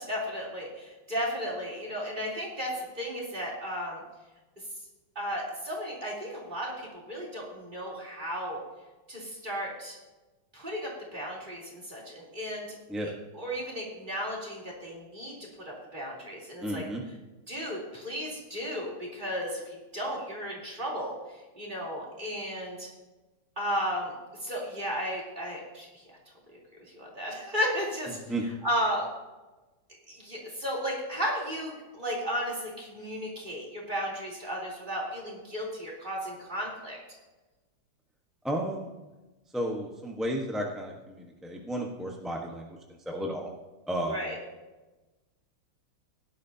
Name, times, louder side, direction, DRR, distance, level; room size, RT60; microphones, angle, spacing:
voice 1, 0.0-4.0 5.2-8.6 9.1-10.0 10.5-12.8 13.4-16.8 17.5-22.9 23.6-24.1 24.4-26.2 26.9-28.2 28.6-29.1 30.1-37.0 44.1-44.4, equal, 20° right, -4 dB, 3.6 m, -34 dB
voice 2, 16.6-17.0 28.3-28.4 38.4-38.9 39.5-42.8 43.0-43.5 43.9-44.3, right 1 dB, ahead, -1 dB, 0.7 m, -33 dB
17.5 x 11.0 x 2.8 m, 1.1 s
omnidirectional pair, 2.2 m